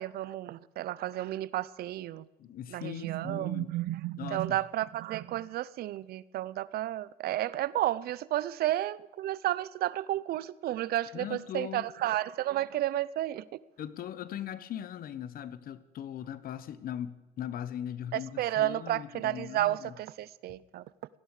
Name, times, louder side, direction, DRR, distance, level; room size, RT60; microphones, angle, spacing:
voice 1, 0.0-2.3 2.7-13.4 18.1-20.8, right 14 dB, 70° right, 0.6 m, -32 dB
voice 2, 2.4-3.7 4.2-4.6 11.1-11.9 13.8-19.9, left 10 dB, 60° left, 1.1 m, -40 dB
18.0 x 15.5 x 4.9 m
cardioid pair, 110°, 17 cm